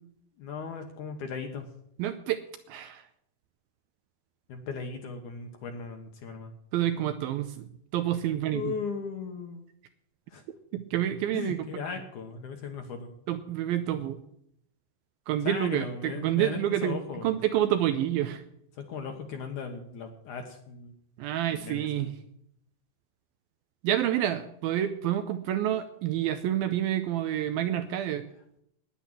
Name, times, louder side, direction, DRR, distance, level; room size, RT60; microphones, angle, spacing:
voice 1, 0.4-1.7 4.5-6.5 8.5-9.6 10.3-10.4 11.3-13.1 15.4-17.3 18.8-20.9 21.5-22.1, left 5 dB, 65° left, 5 dB, 2.2 m, -37 dB
voice 2, 2.0-2.4 2.7-3.0 6.7-7.7 7.9-8.7 10.7-11.6 13.3-14.2 15.3-18.4 21.2-22.2 23.8-28.2, right 11 dB, 80° right, 9 dB, 2.3 m, -28 dB
10.0 x 10.0 x 9.0 m, 0.72 s
omnidirectional pair, 4.8 m